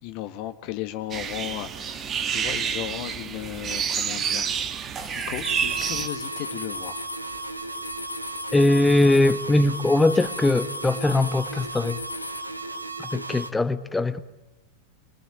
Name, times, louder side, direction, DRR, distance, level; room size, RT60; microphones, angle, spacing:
voice 1, 0.0-4.5 5.1-7.1, left 13 dB, 45° left, 1.6 m, -35 dB
sound 1, 1.1-6.1, right 7 dB, 25° right, 1.8 m, -29 dB
sound 2, 5.0-12.4, left 6 dB, 70° left, 3.1 m, -40 dB
sound 3, 5.4-13.5, right 3 dB, 85° right, 1.8 m, -35 dB
voice 2, 8.5-12.0 13.0-14.2, left 2 dB, 10° left, 1.4 m, -21 dB
26.5 x 24.5 x 9.1 m
figure-of-eight pair, 90°, 0 cm